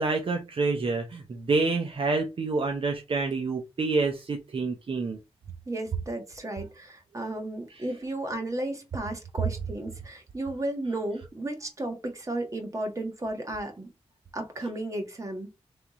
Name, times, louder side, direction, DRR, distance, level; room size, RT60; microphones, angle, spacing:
voice 1, 0.0-5.2, right 3 dB, 55° right, 0.8 m, -27 dB
voice 2, 5.7-13.9 14.3-15.5, right 1 dB, 30° right, 1.5 m, -34 dB
3.5 x 3.4 x 4.2 m
wide cardioid pair, 95°, 11 cm